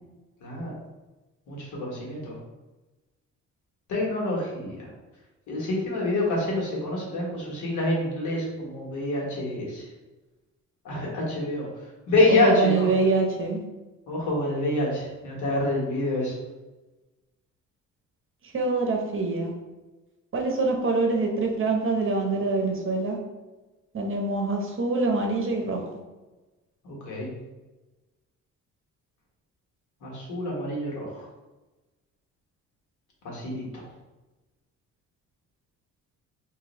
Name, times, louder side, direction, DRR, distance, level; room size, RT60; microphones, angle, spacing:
voice 1, 0.4-0.7 1.5-2.3 3.9-4.9 5.5-9.9 10.8-11.7 12.1-12.9 14.1-16.3 26.8-27.3 30.0-31.3 33.2-33.9, left 2 dB, 75° left, -3 dB, 1.3 m, -27 dB
voice 2, 12.3-13.6 18.5-19.5 20.3-23.2 23.9-25.8, right 3 dB, 45° right, 2 dB, 0.8 m, -25 dB
3.0 x 2.7 x 4.0 m, 1.1 s
cardioid pair, 90°, 30 cm